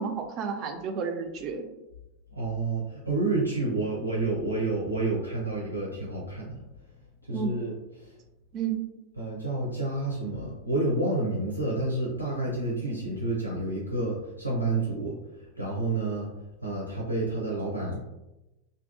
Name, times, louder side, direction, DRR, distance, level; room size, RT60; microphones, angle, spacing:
voice 1, 0.0-1.6 7.3-7.5 8.5-8.8, right 6 dB, 35° right, 5 dB, 0.4 m, -31 dB
voice 2, 2.3-6.6 7.3-7.7 9.2-15.2 15.6-16.3 16.6-18.0, right 2 dB, 90° left, -4 dB, 0.5 m, -29 dB
2.6 x 2.3 x 2.5 m, 0.98 s
figure-of-eight pair, 90°, 0 cm